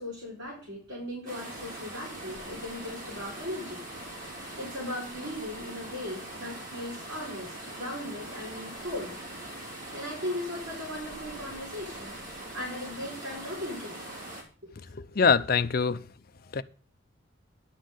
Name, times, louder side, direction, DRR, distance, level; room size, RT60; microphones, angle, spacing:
voice 1, 0.0-3.8 4.6-9.2 9.9-12.2 12.5-14.0 14.6-14.7, left 1 dB, 65° right, 4.4 m, -38 dB
sound 1, 1.3-14.4, right 1 dB, 45° right, 2.8 m, -42 dB
voice 2, 15.0-16.0 16.5-16.6, left 5 dB, 50° left, 0.6 m, -23 dB
11.0 x 4.3 x 7.9 m
head